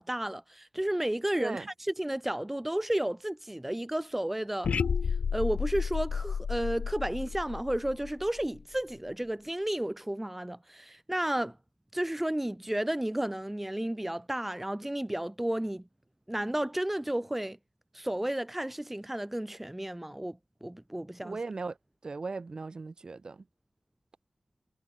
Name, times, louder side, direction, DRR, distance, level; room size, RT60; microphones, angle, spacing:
voice 1, 0.0-4.7 5.3-11.6 11.9-15.8 16.3-17.6 17.9-21.4, right 1 dB, 10° right, 1.7 m, -32 dB
sound 1, 4.6-8.8, left 6 dB, 80° left, 5.8 m, -32 dB
voice 2, 21.2-21.8 22.0-23.4, right 3 dB, 40° right, 3.7 m, -37 dB
wide cardioid pair, 120°, 2 cm